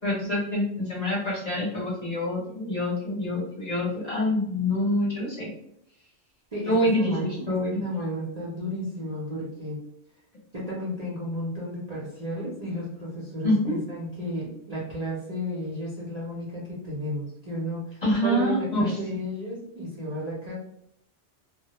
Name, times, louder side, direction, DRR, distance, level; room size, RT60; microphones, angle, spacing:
voice 1, 0.0-5.5 6.7-7.8 13.4-13.8 18.0-19.0, left 1 dB, 40° left, -6 dB, 0.8 m, -26 dB
voice 2, 6.5-9.8 10.5-20.5, equal, 45° right, -6 dB, 0.6 m, -33 dB
2.1 x 2.0 x 2.8 m, 0.72 s
omnidirectional pair, 1.2 m